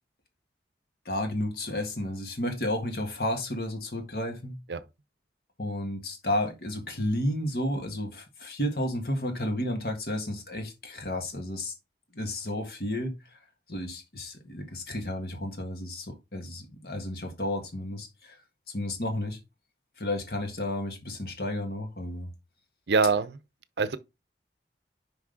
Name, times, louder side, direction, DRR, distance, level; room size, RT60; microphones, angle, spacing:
voice 1, 1.1-4.6 5.6-11.7 12.1-13.4 13.7-18.4 18.7-19.4 20.0-22.3, left 1 dB, 55° left, 1.8 m, -32 dB
voice 2, 22.9-23.4 23.8-24.0, right 4 dB, 75° right, 0.6 m, -24 dB
6.0 x 5.4 x 3.9 m
head